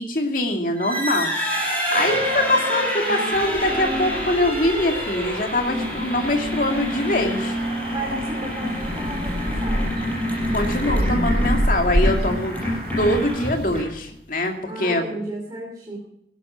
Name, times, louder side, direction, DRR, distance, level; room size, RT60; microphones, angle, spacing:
voice 1, 0.0-7.6 10.5-15.2, left 1 dB, 50° left, 3 dB, 2.4 m, -23 dB
sound 1, 0.7-14.1, equal, 10° left, 6.3 m, -27 dB
sound 2, 3.3-13.8, equal, 65° right, 1.7 m, -29 dB
voice 2, 7.9-9.9 14.7-16.0, right 1 dB, 20° right, -1 dB, 3.0 m, -33 dB
16.0 x 12.0 x 5.8 m, 0.73 s
head